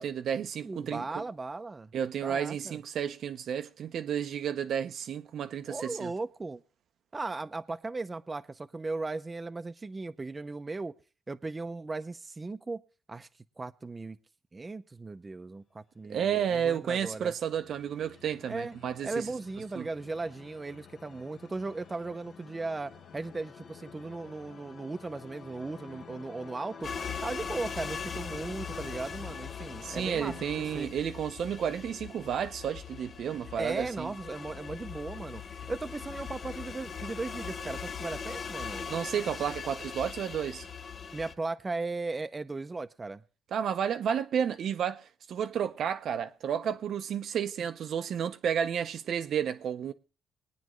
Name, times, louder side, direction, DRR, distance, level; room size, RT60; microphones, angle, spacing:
voice 1, 0.0-1.2 1.9-6.1 16.1-19.2 19.8-19.9 29.8-34.1 38.9-40.7 43.5-49.9, right 8 dB, 65° right, 0.7 m, -32 dB
voice 2, 0.6-1.9 2.2-2.8 5.7-6.6 7.1-10.9 11.3-12.8 13.1-13.3 13.6-14.2 14.5-17.3 18.5-18.7 19.0-26.9 27.2-30.3 30.7-30.9 33.6-38.8 41.1-43.2, right 3 dB, 25° right, 0.6 m, -37 dB
sound 1, 16.5-30.9, left 6 dB, 65° left, 1.1 m, -50 dB
sound 2, 26.8-41.3, left 6 dB, 50° left, 0.7 m, -40 dB
21.5 x 9.4 x 3.1 m
cardioid pair, 90°, 0 cm